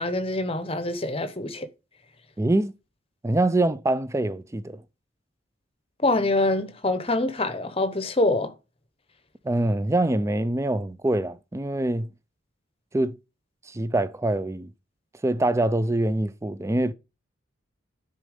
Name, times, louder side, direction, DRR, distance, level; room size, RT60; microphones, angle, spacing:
voice 1, 0.0-1.7 6.0-8.5, left 2 dB, 30° left, 0.8 m, -25 dB
voice 2, 2.4-2.7 3.2-4.8 9.4-12.1 12.9-13.2 13.7-14.7 15.2-16.9, right 1 dB, 15° right, 0.4 m, -24 dB
9.7 x 4.2 x 5.0 m
head